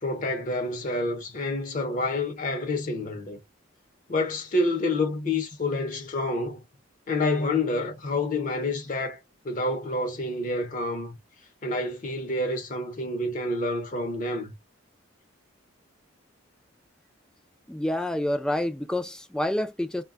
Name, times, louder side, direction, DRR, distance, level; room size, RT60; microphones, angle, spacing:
voice 1, 0.0-3.4 4.1-6.6 7.1-9.2 9.4-11.2 11.6-14.5, left 2 dB, 40° left, 0.7 m, -28 dB
voice 2, 17.7-20.0, left 1 dB, 5° left, 0.3 m, -28 dB
2.2 x 2.1 x 3.6 m
head